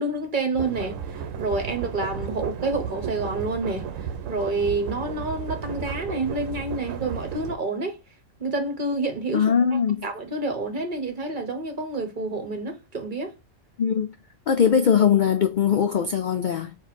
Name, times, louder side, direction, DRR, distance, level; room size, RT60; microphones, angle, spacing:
voice 1, 0.0-3.9 4.3-8.0 8.4-9.5 10.0-13.4, right 2 dB, 40° right, 1.0 m, -28 dB
sound 1, 0.5-7.6, right 7 dB, 85° right, 1.0 m, -33 dB
voice 2, 9.3-10.1 13.8-14.1 14.5-16.8, left 7 dB, 65° left, 0.4 m, -21 dB
4.4 x 2.5 x 4.1 m
omnidirectional pair, 1.3 m